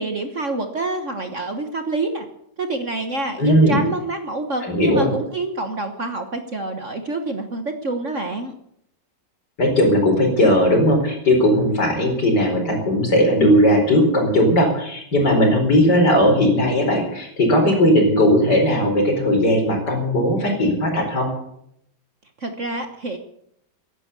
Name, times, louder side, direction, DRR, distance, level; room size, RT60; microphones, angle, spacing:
voice 1, 0.0-2.3 2.6-8.5 22.4-23.2, right 2 dB, 40° right, 7 dB, 1.4 m, -27 dB
voice 2, 3.4-3.8 4.6-5.1 9.6-21.3, equal, 55° left, 3 dB, 5.1 m, -17 dB
15.5 x 11.0 x 8.2 m, 0.73 s
omnidirectional pair, 2.2 m